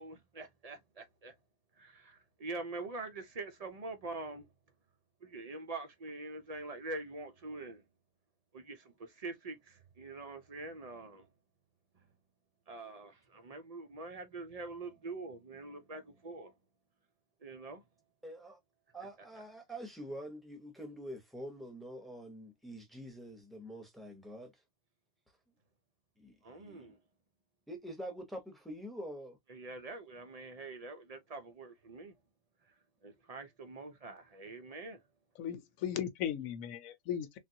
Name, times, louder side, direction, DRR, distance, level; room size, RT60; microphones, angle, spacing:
voice 1, 0.0-1.3 1.7-4.5 5.2-7.8 8.5-11.3 12.7-16.5 17.4-17.8 26.4-27.0 29.5-32.2 32.6-32.7 33.0-35.0, right 3 dB, 55° right, 0.4 m, -45 dB
voice 2, 18.2-18.6 18.9-24.6 26.2-26.9 27.7-29.4, equal, ahead, 0.7 m, -46 dB
voice 3, 35.4-37.4, left 9 dB, 75° left, 1.0 m, -37 dB
3.5 x 2.4 x 2.7 m
omnidirectional pair, 1.5 m